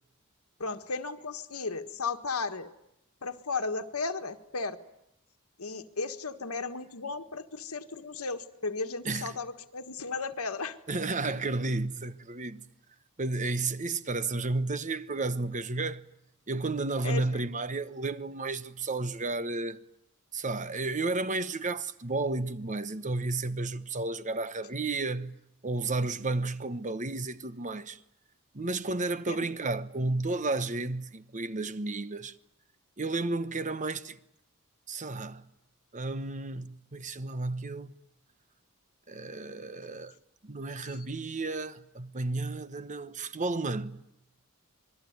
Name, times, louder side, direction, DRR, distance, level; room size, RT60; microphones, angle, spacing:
voice 1, 0.6-2.7 3.2-4.8 5.6-10.8 17.0-17.4 29.3-29.5 40.8-41.0, left 4 dB, 80° left, 1.6 m, -35 dB
voice 2, 9.0-9.4 10.9-12.7 13.2-16.1 16.5-19.8 20.3-25.4 25.6-28.0 28.5-32.3 33.0-34.2 34.9-35.5 35.9-37.9 39.1-40.1 40.4-44.0, right 3 dB, 35° right, 1.1 m, -32 dB
26.5 x 22.0 x 9.5 m
head